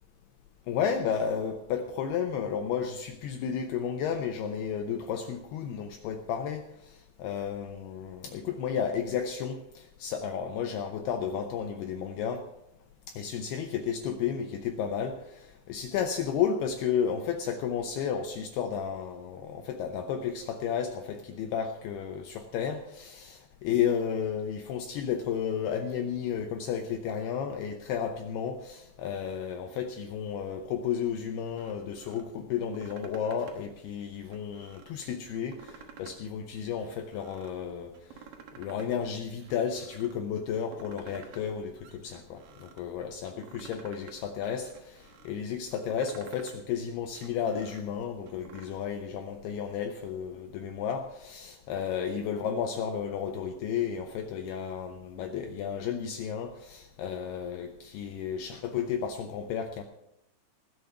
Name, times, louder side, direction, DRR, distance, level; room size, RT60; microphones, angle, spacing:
voice 1, 0.7-12.4 13.1-37.9 38.6-59.8, left 7 dB, 85° left, 5 dB, 2.3 m, -32 dB
sound 1, 31.5-32.2 32.6-33.7 34.1-34.9 35.4-36.3 36.6-37.5 37.9-38.9 39.2-40.1 40.5-41.5 41.8-42.8 43.2-44.2 44.4-45.3 45.7-46.6 47.0-48.7, right 7 dB, 70° right, 2.2 m, -52 dB
20.0 x 6.7 x 5.8 m, 0.86 s
omnidirectional pair, 5.6 m